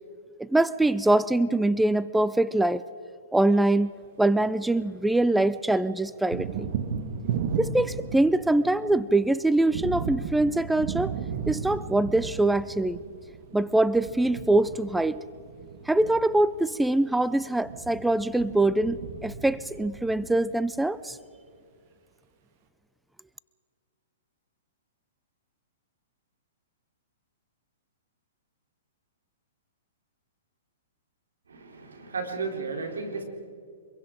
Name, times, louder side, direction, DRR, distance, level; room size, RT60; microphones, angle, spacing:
voice 1, 0.4-2.8 3.3-3.9 4.2-6.7 7.6-11.1 11.5-13.0 13.5-15.2 15.9-21.2, right 2 dB, 5° right, 17 dB, 0.4 m, -23 dB
Thunder, 4.0-5.3 5.5-20.8, right 7 dB, 55° right, 1.9 m, -36 dB
voice 2, 31.5-33.2, right 4 dB, 85° right, 3 dB, 3.8 m, -34 dB
26.0 x 22.0 x 5.1 m, 2.3 s
hypercardioid pair, 125°, 0 cm